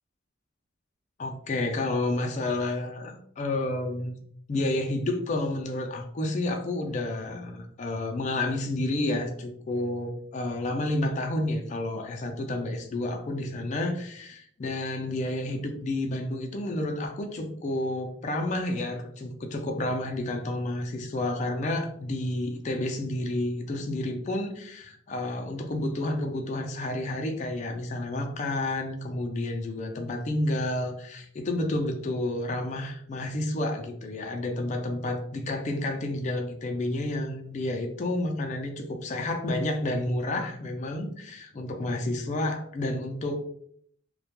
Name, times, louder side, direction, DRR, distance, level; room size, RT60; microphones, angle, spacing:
voice 1, 1.2-4.1 4.5-43.4, left 1 dB, 35° left, 3 dB, 0.3 m, -30 dB
2.2 x 2.1 x 2.8 m, 0.64 s
head